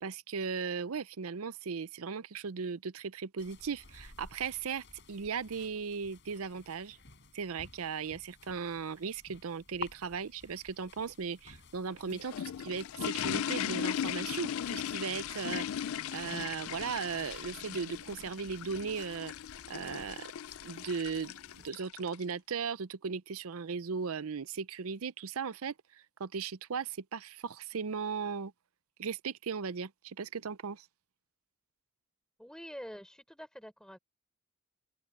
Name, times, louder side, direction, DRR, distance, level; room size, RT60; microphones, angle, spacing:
voice 1, 0.0-7.0 7.3-19.3 19.7-20.3 20.6-28.5 29.0-30.9, right 5 dB, 75° right, 0.6 m, -37 dB
sound 1, 3.4-21.7, left 4 dB, 55° left, 4.6 m, -54 dB
sound 2, 11.9-22.2, left 9 dB, 75° left, 0.4 m, -38 dB
voice 2, 32.4-34.0, equal, 5° left, 3.9 m, -46 dB
open air
head